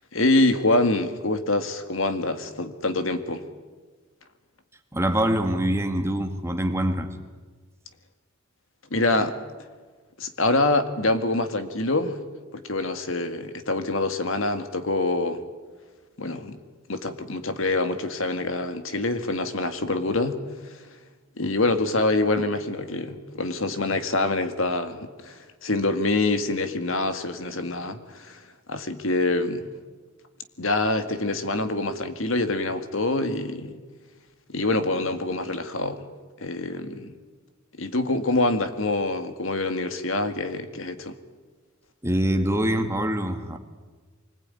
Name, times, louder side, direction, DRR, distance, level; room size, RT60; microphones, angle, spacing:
voice 1, 0.1-3.4 8.9-9.4 10.2-12.2 12.5-15.4 16.2-16.6 16.9-20.8 21.4-28.4 28.7-29.7 30.6-33.8 34.5-36.0 36.4-37.2 37.8-41.2, left 2 dB, 65° left, 9 dB, 2.0 m, -25 dB
voice 2, 4.9-7.1 42.0-43.6, right 1 dB, 15° right, 5 dB, 1.9 m, -24 dB
25.0 x 20.0 x 9.8 m, 1.4 s
head